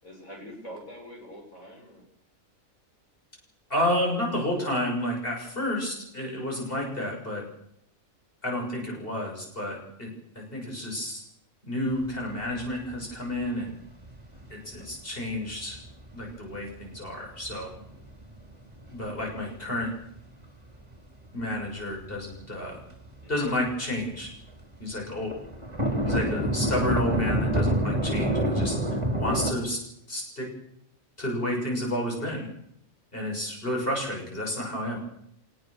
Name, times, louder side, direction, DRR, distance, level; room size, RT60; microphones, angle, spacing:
voice 1, 0.0-2.0 23.2-23.5, equal, 80° left, 0 dB, 7.1 m, -44 dB
voice 2, 3.7-7.4 8.4-11.2 11.6-13.8 14.5-15.8 16.1-17.7 18.9-19.9 21.3-22.8 23.3-24.3 24.8-25.3 26.0-28.8 29.2-29.8 30.1-30.5 31.2-32.5 33.1-35.0, left 1 dB, 40° left, 0 dB, 7.0 m, -30 dB
sound 1, 12.4-12.6 12.9-13.0 13.4-13.5 14.1-14.4 14.8-14.9 15.5-16.3 16.8-16.9 17.5-19.4 19.8-20.2 20.7-20.8 21.4-21.5 21.6-23.2 23.5-23.7 24.0-24.1 24.4-24.5 24.7-24.8 25.2-29.5, right 1 dB, 20° right, 4.2 m, -27 dB
25.0 x 19.5 x 6.6 m, 0.73 s
omnidirectional pair, 1.4 m